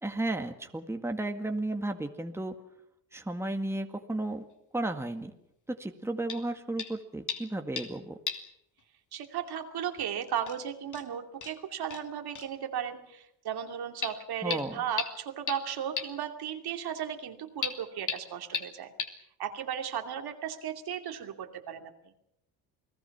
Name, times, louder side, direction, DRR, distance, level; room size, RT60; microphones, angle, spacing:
voice 1, 0.0-2.6 3.1-4.5 4.7-5.3 5.7-8.2 14.4-14.8, right 2 dB, 5° right, 5 dB, 1.9 m, -33 dB
sound 1, 6.3-6.5 6.8-7.0 7.3-8.0 8.3-8.5 8.8-8.9 10.0-10.1 10.5-10.6 10.9-11.0 11.4-11.5 11.9-12.0 12.4-12.5 14.0-14.1 14.5-14.6 15.0-15.1 15.5-15.6 16.0-16.1 17.6-17.7 18.1-18.2 18.5-18.6 19.0-19.1, left 6 dB, 45° left, 2.8 m, -34 dB
voice 2, 9.1-18.9 19.4-21.9, right 9 dB, 65° right, 5 dB, 2.7 m, -35 dB
29.0 x 18.5 x 6.0 m, 0.80 s
cardioid pair, 85°, 41 cm